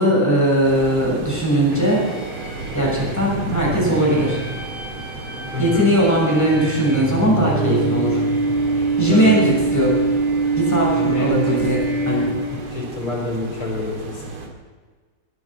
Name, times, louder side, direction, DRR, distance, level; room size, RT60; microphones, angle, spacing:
voice 1, 0.0-2.0 2.7-4.4 5.6-8.2 8.8-9.9 10.5-11.8 12.1-12.2, right 1 dB, 5° left, -4 dB, 6.6 m, -19 dB
sound 1, 0.6-14.5, right 3 dB, 75° right, 3.1 m, -35 dB
sound 2, 1.7-12.8, right 3 dB, 30° right, 2.6 m, -24 dB
voice 2, 5.5-5.9 9.1-9.4 10.9-11.6 12.0-12.4 12.7-14.3, left 3 dB, 90° left, -1 dB, 5.3 m, -27 dB
21.5 x 11.0 x 6.0 m, 1.5 s
omnidirectional pair, 2.3 m